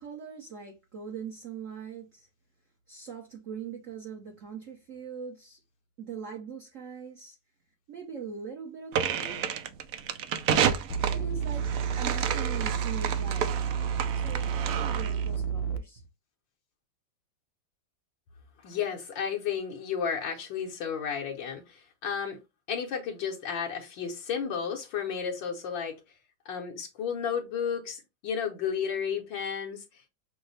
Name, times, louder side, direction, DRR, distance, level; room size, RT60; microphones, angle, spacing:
voice 1, 0.0-2.3 2.9-5.6 6.0-7.4 7.9-9.4 11.1-13.7 14.1-16.0, right 6 dB, 50° right, 1.0 m, -42 dB
sound 1, 8.9-15.3, right 8 dB, 85° right, 0.7 m, -30 dB
sound 2, 10.9-15.8, right 7 dB, 90° left, 1.4 m, -30 dB
voice 2, 18.6-22.4 22.7-25.9 26.4-30.1, left 7 dB, 70° left, 1.5 m, -33 dB
6.1 x 2.1 x 3.9 m
omnidirectional pair, 2.1 m